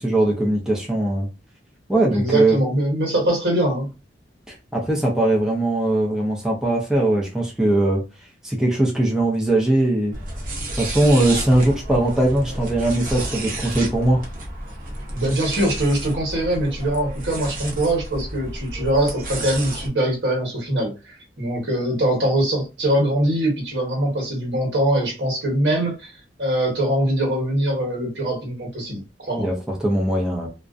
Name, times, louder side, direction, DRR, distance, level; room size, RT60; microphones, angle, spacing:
voice 1, 0.0-1.3 1.9-2.6 4.5-8.0 8.4-10.2 10.8-14.2 29.4-30.5, right 1 dB, 5° right, 0.5 m, -20 dB
voice 2, 2.1-3.9 15.1-20.9 21.4-26.1 26.4-29.5, right 1 dB, 80° right, 1.3 m, -22 dB
sound 1, 10.1-19.9, right 1 dB, 50° right, 0.7 m, -31 dB
2.5 x 2.1 x 2.4 m
head